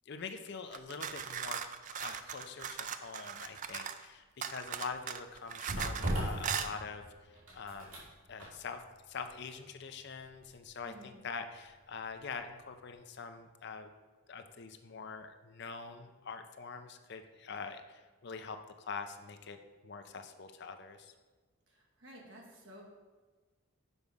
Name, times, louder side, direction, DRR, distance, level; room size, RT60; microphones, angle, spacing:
voice 1, 0.1-1.6 1.9-8.0 8.3-13.9 14.3-19.6 19.8-21.1, left 5 dB, 50° left, 7 dB, 0.5 m, -44 dB
sound 1, 0.7-4.1 4.4-6.1 6.4-6.7, right 8 dB, 35° right, 0.3 m, -39 dB
sound 2, 4.6-12.4 12.7-12.9, right 1 dB, 80° right, 2.5 m, -41 dB
voice 2, 10.8-11.2 21.7-22.8, equal, 60° right, -1 dB, 1.7 m, -53 dB
7.0 x 4.7 x 5.4 m, 1.3 s
head